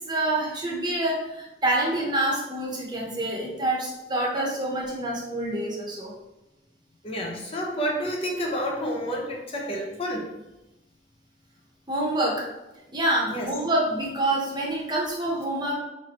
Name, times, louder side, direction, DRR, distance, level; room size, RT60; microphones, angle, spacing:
voice 1, 0.0-6.1 11.9-12.4 12.9-15.7, right 1 dB, 25° right, -3 dB, 0.9 m, -27 dB
voice 2, 7.0-10.3 13.3-13.5, equal, 35° left, 0 dB, 0.6 m, -29 dB
4.5 x 3.3 x 2.9 m, 1.0 s
head